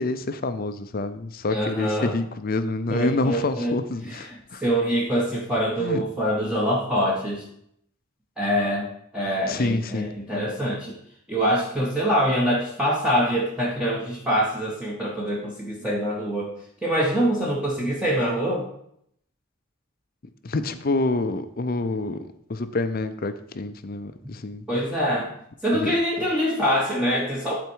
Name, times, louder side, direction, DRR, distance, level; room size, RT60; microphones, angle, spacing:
voice 1, 0.0-4.6 5.8-6.0 9.5-10.1 20.4-24.6 25.7-25.9, left 2 dB, 45° left, 11 dB, 0.5 m, -27 dB
voice 2, 1.5-2.2 2.9-3.8 4.0-4.3 4.6-7.4 8.4-11.0 11.3-16.5 16.8-18.7 24.7-25.3 25.6-27.5, equal, 5° right, -6 dB, 1.1 m, -24 dB
11.5 x 4.3 x 4.6 m, 0.72 s
head